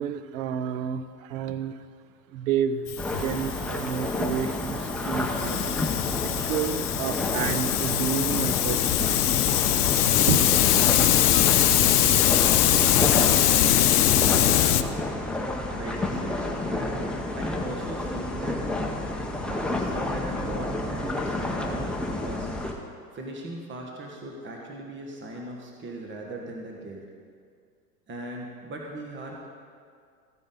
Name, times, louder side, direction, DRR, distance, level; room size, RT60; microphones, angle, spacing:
voice 1, 0.0-1.8 2.3-2.9 3.2-11.6, right 8 dB, 55° right, 12 dB, 0.8 m, -31 dB
Hiss, 2.9-14.8, left 12 dB, 70° left, 0.7 m, -22 dB
sound 1, 3.0-22.7, left 1 dB, ahead, 1.0 m, -30 dB
voice 2, 13.4-14.0 14.3-15.2 15.8-18.6 19.3-22.5 23.1-27.0 28.1-29.5, right 1 dB, 25° right, 0 dB, 1.6 m, -39 dB
14.5 x 9.3 x 4.0 m, 2.2 s
hypercardioid pair, 95°, 47 cm